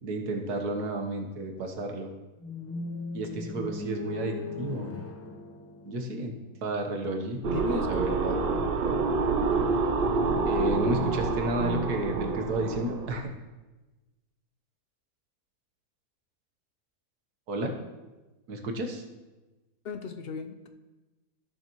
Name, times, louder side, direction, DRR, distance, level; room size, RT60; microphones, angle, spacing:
voice 1, 0.0-2.1 3.1-4.9 5.8-6.3 6.6-7.4 7.8-8.4 10.4-13.3 17.5-17.7 18.5-19.0, right 1 dB, 75° right, 4 dB, 1.7 m, -31 dB
sound 1, 2.4-6.5, left 4 dB, 10° left, 0.7 m, -38 dB
voice 2, 7.4-8.2 19.8-20.7, left 5 dB, 65° left, 7 dB, 0.6 m, -36 dB
sound 2, 7.4-13.2, right 4 dB, 55° right, 0.6 m, -27 dB
17.5 x 6.8 x 3.0 m, 1.2 s
omnidirectional pair, 1.6 m